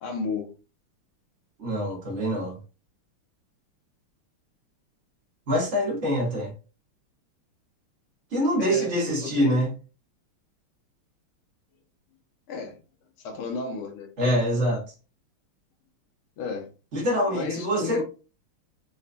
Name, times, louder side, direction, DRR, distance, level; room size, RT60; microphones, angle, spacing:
voice 1, 0.0-0.5 8.6-9.6 12.5-12.8 13.2-14.1 16.4-16.7 17.3-18.0, left 5 dB, 85° left, 1.7 m, -33 dB
voice 2, 1.6-2.6 5.5-6.5 8.3-9.7 14.2-14.8 16.9-18.0, equal, 45° right, 0.9 m, -25 dB
4.2 x 2.2 x 2.5 m
omnidirectional pair, 2.4 m